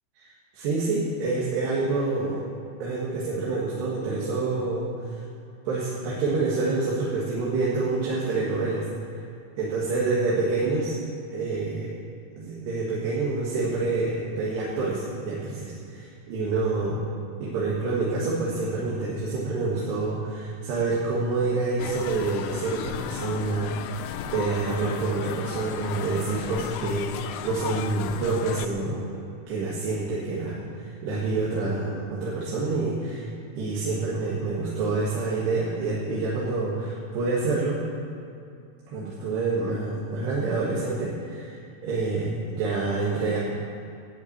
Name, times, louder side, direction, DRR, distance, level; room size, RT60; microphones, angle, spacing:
voice 1, 0.5-2.4 2.8-5.2 5.7-8.8 9.6-10.9 11.3-11.9 12.4-17.0 17.4-29.2 29.5-33.3 33.6-37.8 38.9-43.4, right 3 dB, 75° right, -6 dB, 3.8 m, -27 dB
sound 1, 21.8-28.7, left 10 dB, 85° left, 2.8 m, -35 dB
11.5 x 10.0 x 8.6 m, 2.5 s
omnidirectional pair, 5.0 m